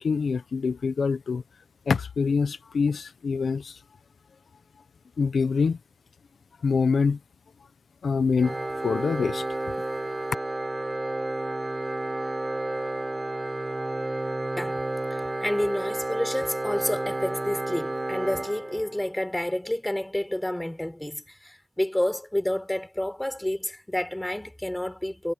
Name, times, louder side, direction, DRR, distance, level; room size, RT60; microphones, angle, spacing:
voice 1, 0.0-1.4 1.9-3.8 5.2-5.8 6.6-7.2 8.0-8.6 8.8-9.6, left 5 dB, 90° left, 0.9 m, -25 dB
Organ, 8.4-19.2, right 2 dB, 30° right, 7.1 m, -31 dB
voice 2, 15.1-25.3, left 1 dB, 10° left, 4.4 m, -29 dB
wide cardioid pair, 65°, 0 cm